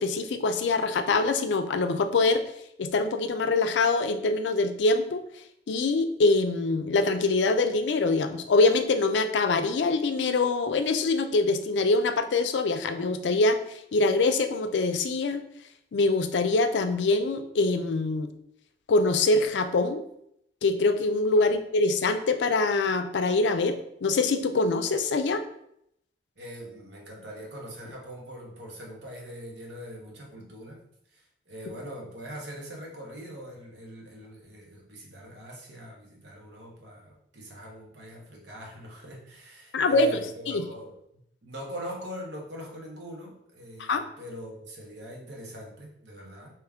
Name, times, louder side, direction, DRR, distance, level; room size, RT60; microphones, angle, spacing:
voice 1, 0.0-2.4 2.8-5.2 5.7-13.6 13.9-15.4 15.9-18.3 18.9-20.0 20.6-25.4 39.7-40.2 40.5-40.6 43.8-44.0, left 3 dB, 80° left, 8 dB, 0.4 m, -24 dB
voice 2, 26.4-30.8 31.1-41.0 41.4-46.5, equal, 75° right, -2 dB, 1.1 m, -42 dB
3.4 x 3.0 x 3.5 m, 0.75 s
head